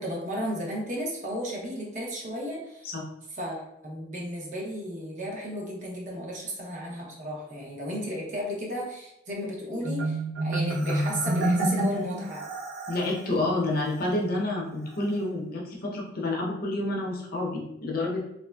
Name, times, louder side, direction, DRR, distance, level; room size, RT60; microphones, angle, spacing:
voice 1, 0.0-2.9 3.3-12.5, equal, 40° right, -2 dB, 0.7 m, -34 dB
Marimba xylophone, 9.8-13.2, right 1 dB, 80° right, 0.7 m, -28 dB
voice 2, 12.9-18.2, left 2 dB, 50° left, -1 dB, 0.6 m, -29 dB
3.1 x 2.5 x 2.2 m, 0.79 s
head